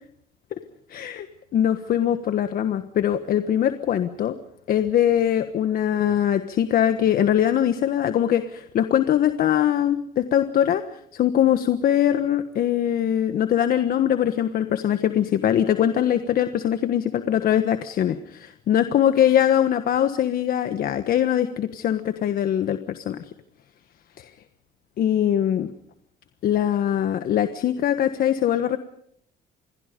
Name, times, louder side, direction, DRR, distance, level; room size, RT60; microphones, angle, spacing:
voice 1, 0.9-1.3 1.5-4.4 4.7-23.2 24.2-24.3 25.0-25.7 26.4-28.8, left 10 dB, 60° left, 10 dB, 1.4 m, -22 dB
27.5 x 22.0 x 5.3 m, 0.69 s
cardioid pair, 110°, 17 cm